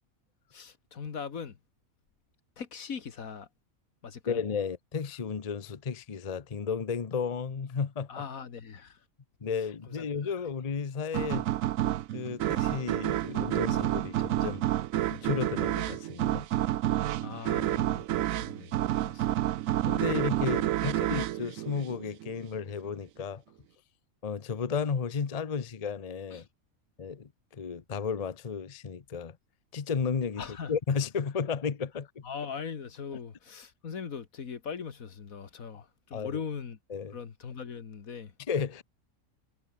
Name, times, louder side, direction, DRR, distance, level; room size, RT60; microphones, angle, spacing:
voice 1, 0.5-1.6 2.6-3.5 4.0-4.4 8.1-9.0 9.9-10.3 17.2-18.8 19.0-19.3 20.9-21.0 26.3-26.5 30.4-30.7 32.2-36.8 37.1-38.3, left 6 dB, 75° left, 2.0 m, -40 dB
voice 2, 4.3-8.1 9.4-11.5 12.1-14.6 15.1-16.5 19.9-23.4 24.2-26.4 27.0-29.4 29.7-30.4 30.7-32.2 35.7-35.8 36.1-36.3 36.9-37.1 38.5-38.8, left 6 dB, 30° left, 0.8 m, -33 dB
sound 1, 11.1-22.4, right 13 dB, 75° right, 1.0 m, -29 dB
omnidirectional pair, 1.5 m